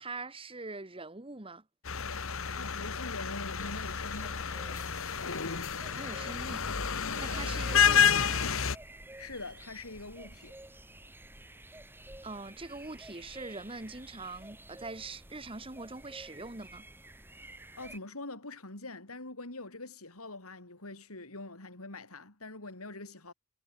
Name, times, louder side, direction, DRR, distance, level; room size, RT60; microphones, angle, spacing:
voice 1, 0.0-1.6 6.0-6.7 7.1-8.5 12.2-16.9, right 3 dB, 25° right, 1.8 m, -43 dB
sound 1, 1.9-8.8, left 7 dB, 65° left, 1.5 m, -29 dB
voice 2, 2.2-4.4 9.2-10.6 17.4-17.5 17.8-23.3, left 2 dB, 90° left, 5.2 m, -44 dB
sound 2, 3.6-18.0, right 1 dB, 10° right, 7.7 m, -51 dB
head